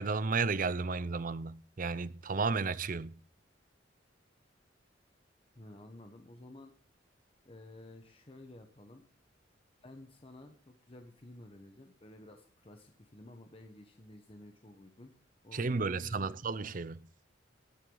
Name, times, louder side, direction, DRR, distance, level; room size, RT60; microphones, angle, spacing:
voice 1, 0.0-3.2 15.5-17.0, right 4 dB, 45° right, 0.6 m, -33 dB
voice 2, 5.5-6.7 7.4-9.1 9.8-15.1 15.4-16.4, left 1 dB, 30° left, 1.1 m, -52 dB
19.0 x 8.1 x 3.9 m
head